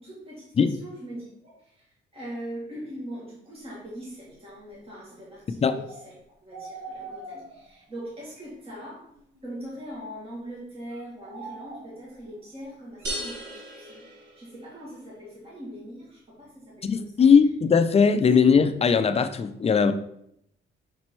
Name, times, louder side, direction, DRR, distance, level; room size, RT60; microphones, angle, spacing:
voice 1, 0.0-1.9 2.1-6.1 6.4-9.0 9.4-17.3 18.4-18.5, equal, 30° right, 2.0 m, -41 dB
sound 1, 5.9-6.1 6.5-7.8 8.4-8.5 9.1-9.7 10.9-12.3 13.0-13.1, right 3 dB, 85° right, 1.7 m, -42 dB
sound 2, 13.0-14.9, right 1 dB, 60° right, 1.6 m, -36 dB
voice 2, 16.8-19.9, left 6 dB, 30° left, 0.5 m, -19 dB
5.2 x 4.4 x 4.5 m
cardioid pair, 90°, 20 cm